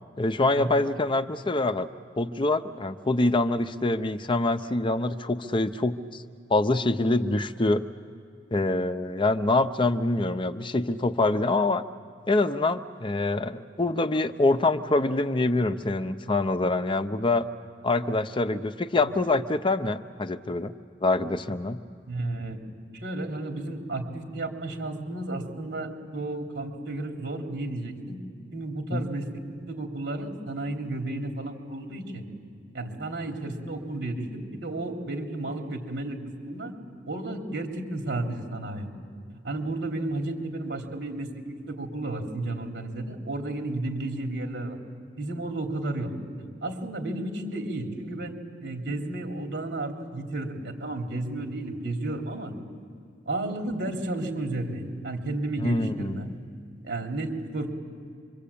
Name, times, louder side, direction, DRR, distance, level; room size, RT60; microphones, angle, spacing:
voice 1, 0.2-1.9 2.2-6.2 6.5-7.8 8.5-11.8 12.3-17.5 17.8-20.7 21.0-21.8 28.9-29.0 55.6-56.4, left 2 dB, 30° left, 10 dB, 0.7 m, -25 dB
voice 2, 22.1-22.6 22.9-28.2 28.5-29.3 29.7-32.2 32.7-36.7 37.1-38.9 39.3-44.8 45.2-46.1 46.6-48.4 48.6-52.5 53.3-56.3 56.8-57.7, right 2 dB, 75° right, 2 dB, 3.4 m, -32 dB
26.0 x 24.0 x 8.6 m, 2.3 s
head